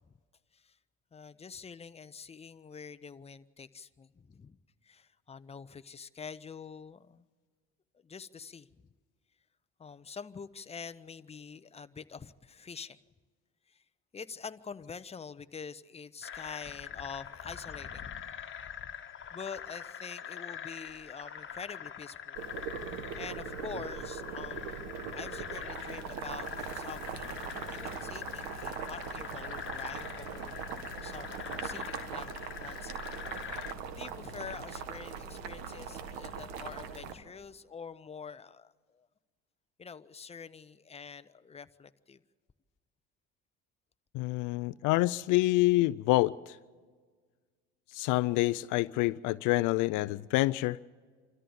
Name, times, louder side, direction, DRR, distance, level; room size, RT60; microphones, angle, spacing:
voice 1, 1.1-4.6 4.8-7.3 8.0-8.8 9.8-13.0 13.7-13.8 14.1-18.1 19.3-22.4 23.1-33.1 33.9-39.1 39.8-42.2, left 6 dB, 20° left, 0.8 m, -46 dB
sound 1, 16.2-33.7, left 8 dB, 35° left, 1.7 m, -43 dB
Boiling, 22.3-37.1, right 6 dB, 80° right, 1.7 m, -41 dB
voice 2, 44.1-46.6 47.9-50.8, left 19 dB, 65° left, 0.5 m, -27 dB
26.0 x 14.0 x 7.2 m
hypercardioid pair, 75°, 34 cm